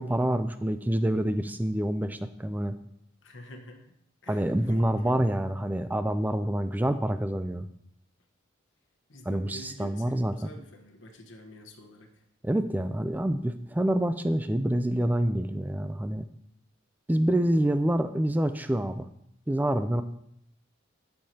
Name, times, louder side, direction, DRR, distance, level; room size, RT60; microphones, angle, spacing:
voice 1, 0.0-2.7 4.3-7.7 9.3-10.5 12.4-16.2 17.1-19.1 19.5-20.0, right 1 dB, 10° right, 10 dB, 0.3 m, -27 dB
voice 2, 3.2-3.9 4.2-5.2 9.1-12.2, equal, 70° left, 3 dB, 1.1 m, -48 dB
10.5 x 6.7 x 2.8 m, 0.74 s
head